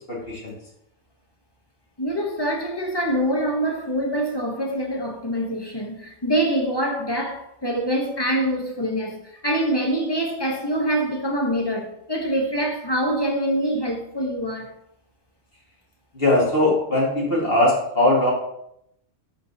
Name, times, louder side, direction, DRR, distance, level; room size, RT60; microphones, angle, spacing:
voice 1, 0.1-0.6 16.1-18.3, left 1 dB, 50° left, 2.1 m, -20 dB
voice 2, 2.0-14.7, right 1 dB, 25° left, 0.9 m, -25 dB
11.0 x 3.8 x 2.7 m
omnidirectional pair, 1.3 m